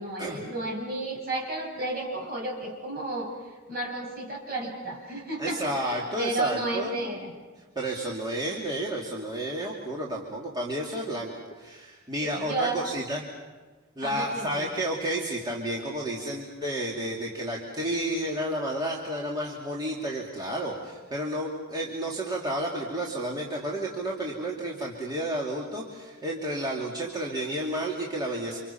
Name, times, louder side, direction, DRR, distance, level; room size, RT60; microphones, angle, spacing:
voice 1, 0.0-3.3 3.7-7.3 12.2-12.8 14.0-14.7, right 2 dB, 50° right, 0 dB, 6.1 m, -32 dB
voice 2, 5.4-7.0 7.7-13.2 14.0-28.6, right 1 dB, 20° right, -3 dB, 2.7 m, -31 dB
28.5 x 27.0 x 5.8 m, 1.3 s
head